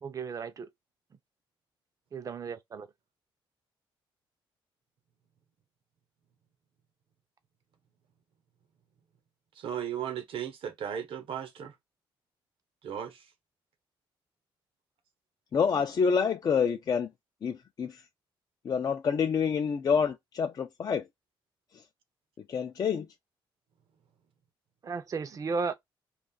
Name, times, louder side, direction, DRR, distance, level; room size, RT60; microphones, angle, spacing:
voice 1, 0.0-0.7 2.1-2.9 24.8-25.7, right 4 dB, 35° right, 0.5 m, -34 dB
voice 2, 9.6-11.7 12.8-13.2, right 9 dB, 75° right, 0.9 m, -36 dB
voice 3, 15.5-17.1 17.4-18.0 18.6-21.0 22.5-23.1, left 6 dB, 45° left, 0.4 m, -27 dB
2.5 x 2.3 x 3.7 m
cardioid pair, 110°, 9 cm